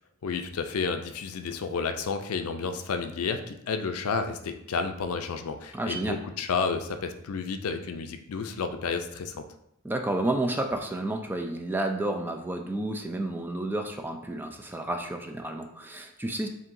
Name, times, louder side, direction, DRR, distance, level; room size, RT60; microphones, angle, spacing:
voice 1, 0.2-9.4, left 5 dB, 80° left, 7 dB, 0.5 m, -31 dB
voice 2, 5.7-6.2 9.8-16.5, right 1 dB, 10° right, 4 dB, 0.3 m, -31 dB
7.5 x 2.7 x 2.6 m, 0.77 s
head